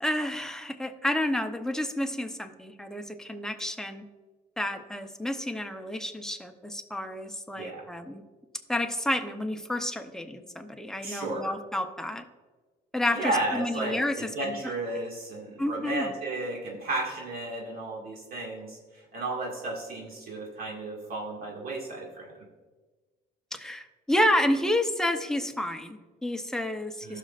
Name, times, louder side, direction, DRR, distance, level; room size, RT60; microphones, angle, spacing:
voice 1, 0.0-4.0 4.6-8.2 8.7-12.2 12.9-14.7 15.6-16.2 23.5-27.2, left 1 dB, 5° left, 5 dB, 0.8 m, -30 dB
voice 2, 7.6-7.9 11.0-11.5 13.1-22.3 27.0-27.2, right 2 dB, 60° right, -2 dB, 2.1 m, -33 dB
16.0 x 6.3 x 2.5 m, 1.3 s
cardioid pair, 110°, 17 cm